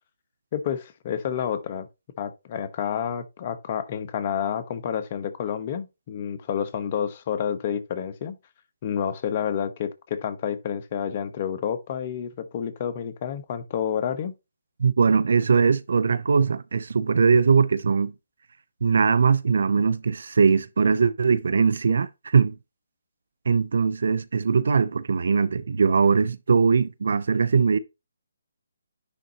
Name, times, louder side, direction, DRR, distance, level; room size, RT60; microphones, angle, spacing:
voice 1, 0.5-1.9 2.2-8.4 8.8-14.3, left 8 dB, 35° left, 1.2 m, -29 dB
voice 2, 14.8-18.1 18.8-22.5 23.5-27.8, right 5 dB, 65° right, 0.7 m, -21 dB
10.0 x 3.9 x 3.0 m
hypercardioid pair, 155°, 0 cm